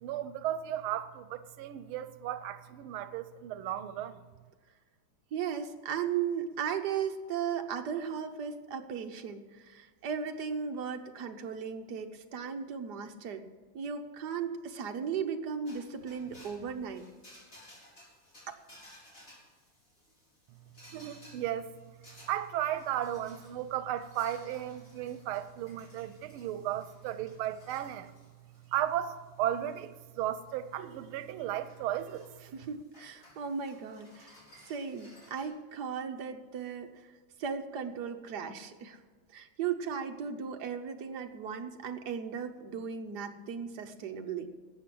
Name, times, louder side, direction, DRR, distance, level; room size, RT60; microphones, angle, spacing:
voice 1, 0.0-4.2 20.9-21.7 22.3-28.1 28.7-32.3, right 11 dB, 90° right, 13 dB, 1.5 m, -35 dB
voice 2, 5.3-13.4 13.7-17.1 32.5-34.3 34.6-37.1 37.4-39.0 39.3-44.5, right 7 dB, 60° right, 5 dB, 1.4 m, -36 dB
sound 1, 15.6-35.4, left 1 dB, 40° left, 4.7 m, -58 dB
13.0 x 8.3 x 7.7 m, 1.4 s
omnidirectional pair, 2.3 m